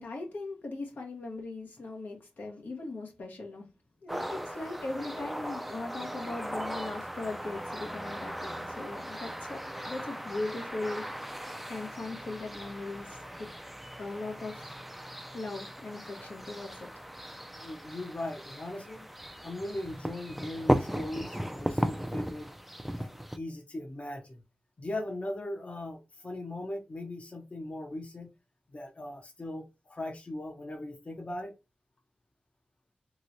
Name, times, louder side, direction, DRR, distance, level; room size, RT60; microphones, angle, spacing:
voice 1, 0.0-3.7 4.0-13.5 14.0-14.7 15.3-16.9, left 2 dB, 85° left, 1.0 m, -39 dB
sound 1, 4.1-23.4, equal, 5° right, 0.3 m, -37 dB
voice 2, 17.6-19.1 19.4-22.5 23.0-24.4 24.8-28.3 28.7-31.5, left 1 dB, 45° left, 0.7 m, -39 dB
3.1 x 3.0 x 2.5 m
wide cardioid pair, 75°, 3 cm